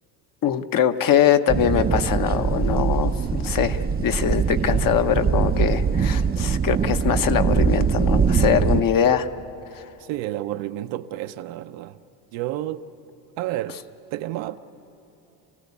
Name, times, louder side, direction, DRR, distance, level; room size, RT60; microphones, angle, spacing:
voice 1, 0.4-9.3 9.7-9.8, left 9 dB, 45° left, 1.0 m, -22 dB
sound 1, 1.5-8.8, right 6 dB, 20° right, 0.6 m, -22 dB
voice 2, 4.6-5.0 10.0-12.0 12.3-12.8 13.4-13.8 14.1-14.6, right 14 dB, 75° right, 0.9 m, -30 dB
28.0 x 16.0 x 8.4 m
cardioid pair, 105°, 45 cm